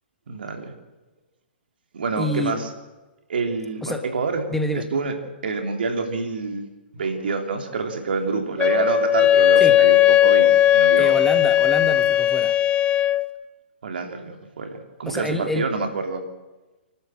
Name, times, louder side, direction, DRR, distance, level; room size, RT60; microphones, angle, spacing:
voice 1, 0.3-0.7 1.9-2.7 3.3-4.4 4.7-5.1 5.4-6.7 6.9-11.1 13.8-14.7 15.0-16.2, right 4 dB, 65° right, 5 dB, 3.3 m, -27 dB
voice 2, 2.2-2.5 3.8-4.1 4.5-4.9 9.6-9.8 11.0-12.6 15.1-15.7, left 1 dB, 5° left, 6 dB, 1.4 m, -27 dB
Wind instrument woodwind instrument, 8.6-13.3, left 11 dB, 20° left, 0.8 m, -17 dB
28.5 x 12.5 x 7.7 m, 1.2 s
figure-of-eight pair, 120°, 6 cm